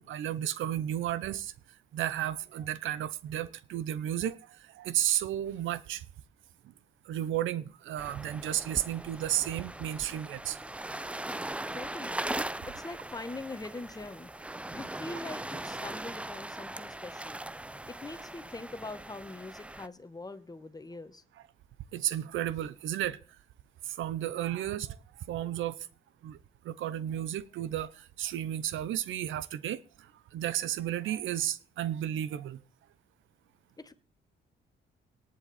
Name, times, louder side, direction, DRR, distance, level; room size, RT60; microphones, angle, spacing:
voice 1, 0.0-1.5 1.9-6.1 7.1-10.6 21.9-23.2 23.8-25.0 25.3-25.8 26.2-26.4 26.6-32.6, right 11 dB, 80° right, 0.7 m, -33 dB
sound 1, 8.0-19.9, right 1 dB, 5° right, 0.4 m, -40 dB
voice 2, 11.7-17.4 17.9-21.2 33.8-33.9, left 2 dB, 20° left, 1.3 m, -43 dB
18.5 x 7.5 x 4.2 m
cardioid pair, 90°, 20 cm